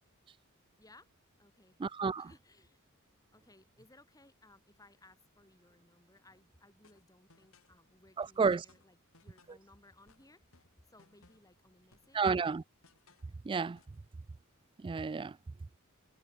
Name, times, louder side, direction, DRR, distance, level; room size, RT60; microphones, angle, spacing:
voice 1, 0.8-1.1 1.4-1.8 2.2-2.8 3.3-12.3, left 2 dB, 15° left, 4.1 m, -62 dB
voice 2, 1.8-2.3 8.2-8.6 12.1-12.6 13.5-13.8 14.8-15.3, right 5 dB, 25° right, 0.3 m, -31 dB
sound 1, 6.8-7.8 8.2-9.7 10.1-11.6 11.9-13.4 13.8-14.1, left 3 dB, 65° left, 6.8 m, -66 dB
head